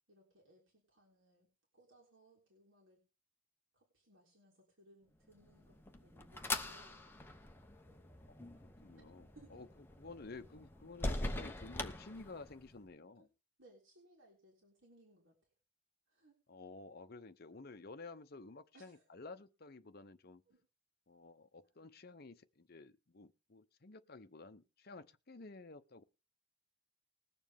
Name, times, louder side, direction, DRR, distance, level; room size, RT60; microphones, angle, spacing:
voice 1, 0.1-1.5 1.7-3.0 3.7-7.2 7.9-8.1 9.0-9.6 13.2-13.3 13.6-15.3 16.1-16.4 18.7-19.0 20.5-20.6 21.8-21.9, right 1 dB, 75° right, 3.7 m, -66 dB
sound 1, 5.4-12.8, left 2 dB, 10° left, 1.0 m, -43 dB
voice 2, 8.3-9.7 10.0-13.3 16.5-20.4 21.1-26.0, left 3 dB, 50° left, 0.8 m, -53 dB
20.5 x 7.0 x 3.6 m
head